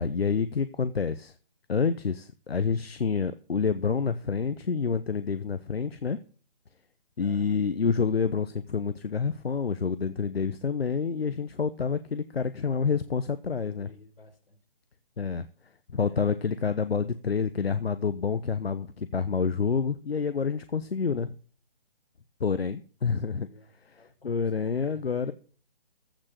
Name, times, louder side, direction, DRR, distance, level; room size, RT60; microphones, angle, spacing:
voice 1, 0.0-1.3 1.7-6.2 7.2-13.9 15.2-15.5 15.9-21.3 22.4-23.5 23.9-25.3, left 5 dB, 85° left, 12 dB, 1.0 m, -28 dB
voice 2, 7.2-7.6 13.6-14.6 16.0-16.2 23.1-25.3, left 2 dB, 70° left, 4 dB, 4.1 m, -53 dB
15.0 x 6.2 x 6.5 m, 0.42 s
hypercardioid pair, 155°, 30 cm